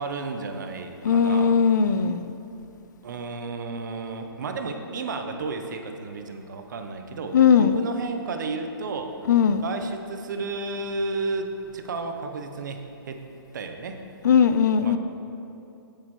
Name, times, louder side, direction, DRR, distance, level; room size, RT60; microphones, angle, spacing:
voice 1, 0.0-1.6 3.0-9.2 9.6-13.2 13.5-14.0 14.8-15.0, right 3 dB, 50° right, 6 dB, 0.7 m, -32 dB
voice 2, 1.0-2.3 7.3-7.8 9.3-9.6 14.2-15.0, left 7 dB, 45° left, 12 dB, 0.4 m, -19 dB
16.0 x 6.6 x 3.1 m, 2.8 s
hypercardioid pair, 175°, 13 cm